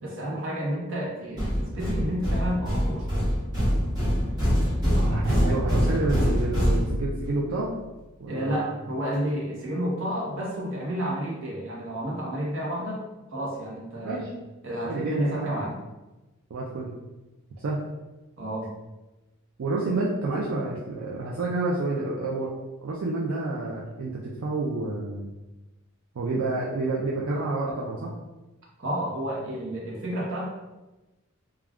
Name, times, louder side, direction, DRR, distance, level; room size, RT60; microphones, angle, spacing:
voice 1, 0.0-3.3 8.3-13.0 13.3-14.3 14.6-15.7 18.4-18.7 28.8-30.5, equal, 60° right, -4 dB, 0.8 m, -30 dB
sound 1, 1.4-7.4, equal, 20° right, 0.9 m, -25 dB
voice 2, 4.9-7.7 8.2-8.6 14.0-14.3 14.8-15.7 16.5-16.9 17.6-17.8 19.6-22.5 22.8-25.3 26.2-28.1, right 2 dB, 75° right, -4 dB, 0.4 m, -29 dB
2.3 x 2.3 x 3.4 m, 1.1 s
head